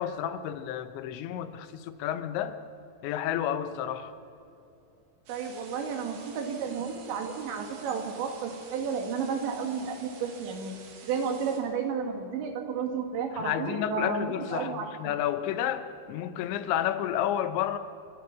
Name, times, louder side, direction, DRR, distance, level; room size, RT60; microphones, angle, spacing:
voice 1, 0.0-2.6 3.0-4.1 13.4-17.8, left 11 dB, 85° left, 11 dB, 3.2 m, -31 dB
sound 1, 5.3-11.6, right 5 dB, 55° right, 3.4 m, -50 dB
voice 2, 5.3-10.8 11.0-15.1, right 6 dB, 80° right, 4 dB, 4.2 m, -32 dB
29.0 x 12.0 x 7.5 m, 2.8 s
omnidirectional pair, 5.1 m